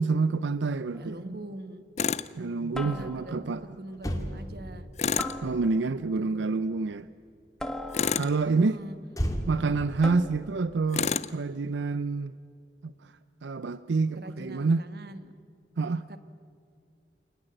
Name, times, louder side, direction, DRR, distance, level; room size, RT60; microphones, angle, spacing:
voice 1, 0.0-1.4 2.4-3.7 5.4-7.1 8.2-8.8 9.5-12.3 12.8-13.1 13.4-14.8 15.8-16.1, right 4 dB, 85° right, 15 dB, 0.5 m, -27 dB
sound 1, 0.9-1.3 2.7-3.5 5.2-6.0 7.6-8.5 10.0-10.6, left 1 dB, 5° left, 1.3 m, -38 dB
voice 2, 1.0-1.8 2.8-4.9 5.9-6.6 8.4-9.0 14.1-15.3 16.1-16.2, right 1 dB, 55° right, 11 dB, 1.3 m, -43 dB
Tools, 2.0-2.3 5.0-5.4 7.9-8.4 10.9-11.3, left 6 dB, 40° left, 0.5 m, -28 dB
Motor vehicle (road), 3.9-7.5 9.1-11.7 12.0-12.2, equal, 20° left, 2.0 m, -37 dB
25.0 x 20.0 x 7.8 m, 2.5 s
head